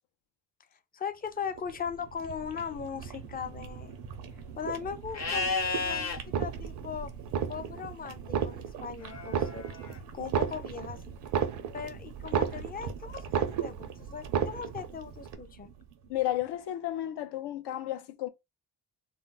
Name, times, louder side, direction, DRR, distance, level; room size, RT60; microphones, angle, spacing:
voice 1, 0.9-4.0 4.6-7.1 7.5-9.7 10.1-11.0 11.7-15.7, left 7 dB, 25° left, 0.4 m, -39 dB
sound 1, 1.2-16.4, right 7 dB, 85° right, 0.7 m, -44 dB
Livestock farm animals working animals, 5.1-6.2 9.0-10.0, left 4 dB, 45° left, 0.8 m, -32 dB
sound 2, 6.2-6.9 7.2-7.9 8.2-8.9 9.2-9.9 10.2-12.9 13.2-13.9 14.2-14.9 15.2-15.3, right 8 dB, 50° right, 0.4 m, -31 dB
voice 2, 16.1-18.3, left 14 dB, 75° left, 0.6 m, -32 dB
2.3 x 2.0 x 3.8 m
cardioid pair, 95°, 40 cm